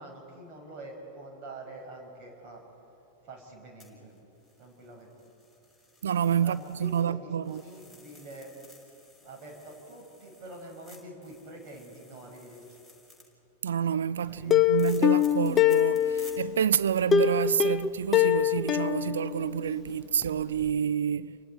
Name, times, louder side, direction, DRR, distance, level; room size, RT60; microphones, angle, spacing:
voice 1, 0.0-2.6 3.2-4.1 4.6-5.1 6.4-8.6 9.2-12.8 14.3-14.7, right 1 dB, 40° right, 6.1 m, -46 dB
sound 1, 3.8-7.1 7.4-13.2 14.8-16.3 16.9-17.0, left 2 dB, 10° right, 5.2 m, -56 dB
voice 2, 6.0-7.6 13.6-21.4, right 8 dB, 65° right, 0.4 m, -28 dB
Plucked string instrument, 14.5-16.5 17.1-19.9 20.2-20.3 20.7-20.8, left 10 dB, 25° left, 0.6 m, -24 dB
29.5 x 23.5 x 4.6 m
figure-of-eight pair, 90°, 0 cm